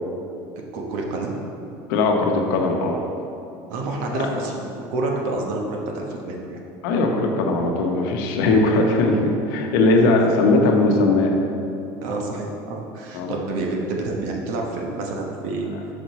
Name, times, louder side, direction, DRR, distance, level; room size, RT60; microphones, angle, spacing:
voice 1, 0.6-1.3 3.7-6.6 10.2-10.3 12.0-15.7, right 2 dB, 70° right, 0 dB, 1.0 m, -28 dB
voice 2, 1.9-3.0 4.1-4.3 6.8-11.4 13.1-13.3, left 2 dB, 80° left, 2 dB, 0.9 m, -19 dB
6.1 x 5.1 x 4.1 m, 2.7 s
cardioid pair, 180°, 11 cm